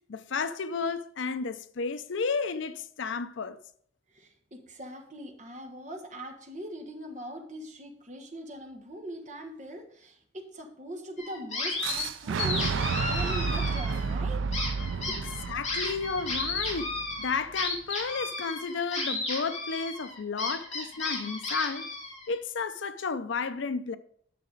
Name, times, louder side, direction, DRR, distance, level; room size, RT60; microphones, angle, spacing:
voice 1, 0.1-3.6 15.5-21.9 22.3-24.0, left 5 dB, 80° left, 0.5 m, -32 dB
voice 2, 4.1-14.4 15.1-15.3, right 1 dB, 40° right, 1.4 m, -41 dB
sound 1, 11.2-12.1 12.4-14.1 14.5-22.3, left 3 dB, 35° left, 2.6 m, -33 dB
Boom, 11.8-17.7, right 5 dB, 90° right, 0.4 m, -32 dB
10.0 x 6.6 x 3.9 m
head